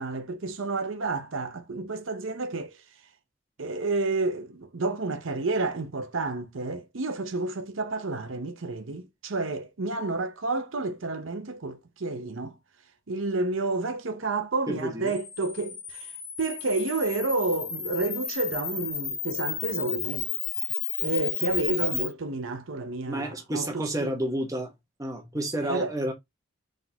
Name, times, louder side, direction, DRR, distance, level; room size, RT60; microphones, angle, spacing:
voice 1, 0.0-2.8 3.6-12.6 13.1-16.1 16.4-20.3 21.0-24.1 25.6-25.9, right 3 dB, 80° right, 0.8 m, -30 dB
voice 2, 14.7-15.1 23.1-24.7 25.0-26.1, right 1 dB, 15° right, 1.1 m, -30 dB
Camera, 15.1-22.1, left 8 dB, 60° left, 1.3 m, -33 dB
4.1 x 3.7 x 2.8 m
head